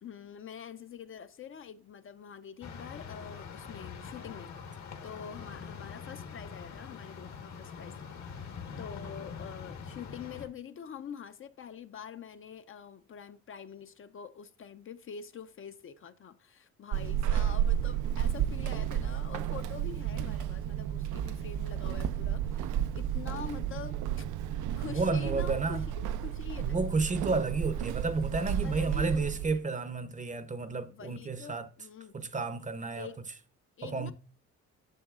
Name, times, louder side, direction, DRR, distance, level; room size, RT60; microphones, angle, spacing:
voice 1, 0.0-4.5 5.0-8.4 8.8-24.3 24.8-27.1 28.6-29.6 30.9-32.1 32.9-33.2 33.8-34.1, left 7 dB, 45° left, 0.5 m, -45 dB
sound 1, 2.6-10.5, left 6 dB, 65° left, 1.3 m, -44 dB
Walk footsteps / Squeak, 16.9-29.6, right 10 dB, 80° right, 0.5 m, -32 dB
voice 2, 24.9-25.8 26.6-31.7 32.1-33.1 33.8-34.1, right 3 dB, 25° right, 0.6 m, -31 dB
9.1 x 6.5 x 2.4 m
cardioid pair, 90°, 30 cm